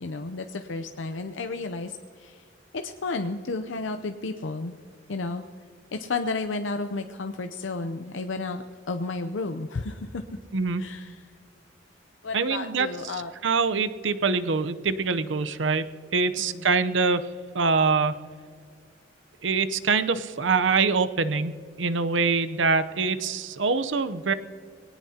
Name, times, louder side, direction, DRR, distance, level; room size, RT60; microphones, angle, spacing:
voice 1, 0.0-2.4 2.7-4.7 5.1-5.4 5.9-10.2 10.8-11.2 12.2-13.3 16.4-16.7, left 3 dB, 80° left, 6 dB, 0.6 m, -32 dB
voice 2, 12.3-12.9 13.4-15.8 16.1-17.3 17.5-18.2 19.4-21.5 21.8-24.3, right 4 dB, 80° right, 12 dB, 0.8 m, -24 dB
22.0 x 18.0 x 2.8 m, 2.2 s
head